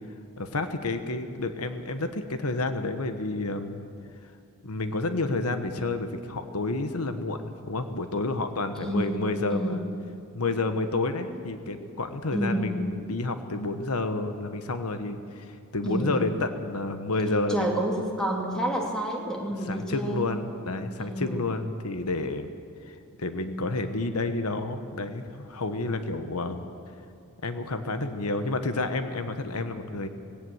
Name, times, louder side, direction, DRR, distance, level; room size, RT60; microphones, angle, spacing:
voice 1, 0.4-3.8 4.6-9.8 10.3-17.9 19.7-22.5 22.8-26.6 27.4-30.1, left 2 dB, 80° left, 8 dB, 1.2 m, -30 dB
voice 2, 8.7-9.2 9.5-9.8 11.3-11.4 12.3-12.8 15.8-16.3 17.5-20.3 21.0-21.5, right 1 dB, 5° left, -1 dB, 2.9 m, -29 dB
19.5 x 17.0 x 7.9 m, 2.6 s
head